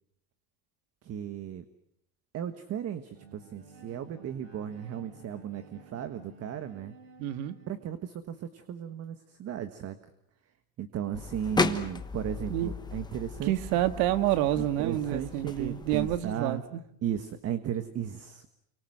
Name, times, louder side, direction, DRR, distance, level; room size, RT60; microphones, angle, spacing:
voice 1, 1.0-1.6 2.3-6.9 7.7-10.0 10.8-13.8 14.6-16.6 17.0-18.5, right 9 dB, 35° right, 11 dB, 1.5 m, -35 dB
Bowed string instrument, 3.1-8.1, right 3 dB, 50° right, 5.8 m, -53 dB
voice 2, 7.2-7.6 12.5-12.7 13.4-16.8, right 13 dB, 80° right, 11 dB, 2.0 m, -28 dB
sound 1, 11.1-16.2, left 4 dB, 10° left, 1.2 m, -35 dB
29.5 x 24.5 x 7.8 m, 0.77 s
cardioid pair, 145°, 44 cm